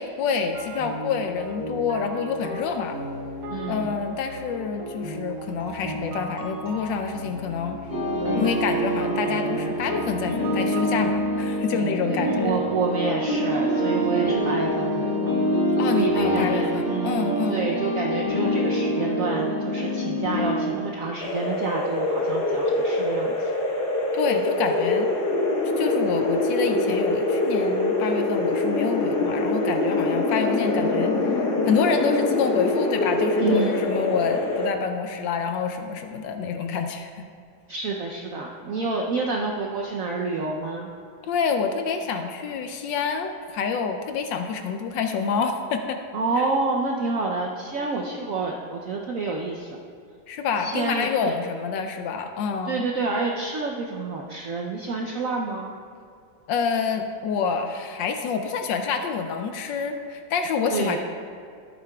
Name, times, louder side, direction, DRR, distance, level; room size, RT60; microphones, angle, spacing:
voice 1, 0.0-3.0 3.7-7.8 8.4-12.6 15.8-17.7 24.1-25.1 25.8-37.3 41.3-46.0 46.4-46.5 50.3-52.9 56.5-61.0, left 5 dB, 75° left, 6 dB, 1.2 m, -27 dB
sound 1, 0.5-16.5, right 1 dB, 50° right, 1.7 m, -36 dB
voice 2, 3.5-4.0 11.7-15.4 15.9-23.5 33.4-33.8 37.7-40.9 46.1-49.8 50.6-51.3 52.6-55.7 60.7-61.0, right 3 dB, 75° right, 0 dB, 0.7 m, -28 dB
sound 2, 7.9-20.7, equal, 25° left, 1.6 m, -25 dB
sound 3, 21.2-34.7, left 2 dB, 60° left, 1.5 m, -24 dB
13.5 x 8.5 x 2.3 m, 2.3 s
omnidirectional pair, 2.2 m